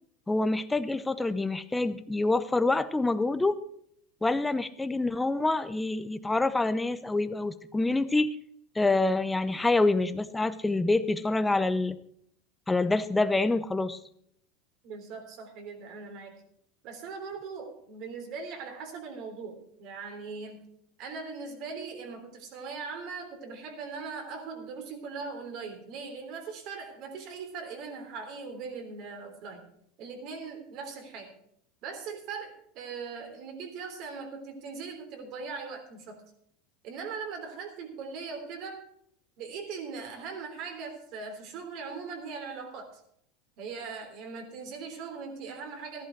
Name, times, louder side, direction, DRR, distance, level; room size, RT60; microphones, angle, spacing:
voice 1, 0.3-3.6 4.2-8.3 8.8-12.0 12.7-14.0, left 2 dB, 10° left, 12 dB, 0.7 m, -26 dB
voice 2, 14.8-16.4 16.8-20.6 21.0-29.7 30.0-31.4 31.8-36.2 36.8-38.8 39.4-43.0 43.6-46.0, right 5 dB, 55° right, 4 dB, 3.4 m, -40 dB
14.0 x 11.0 x 4.6 m, 0.69 s
supercardioid pair, 125°, 0 cm